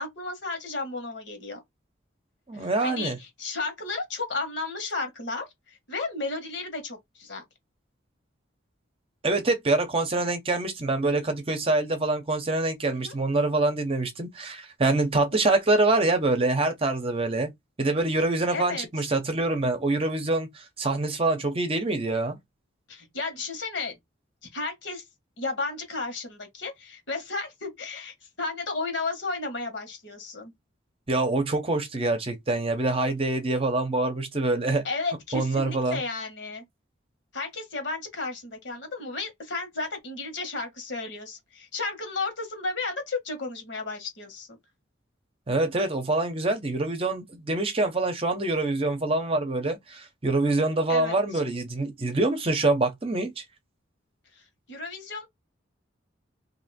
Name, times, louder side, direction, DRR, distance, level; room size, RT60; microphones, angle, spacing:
voice 1, 0.0-1.6 2.5-7.4 12.9-13.2 15.3-15.5 18.5-19.1 22.9-24.0 24.5-25.0 25.4-30.5 34.8-36.6 37.3-44.5 50.9-51.4 54.3-55.3, left 3 dB, 65° left, 1.5 m, -33 dB
voice 2, 2.5-3.2 9.2-17.5 17.8-22.4 31.1-34.8 35.3-36.0 45.5-53.4, right 2 dB, 30° right, 0.8 m, -25 dB
2.8 x 2.7 x 4.2 m
head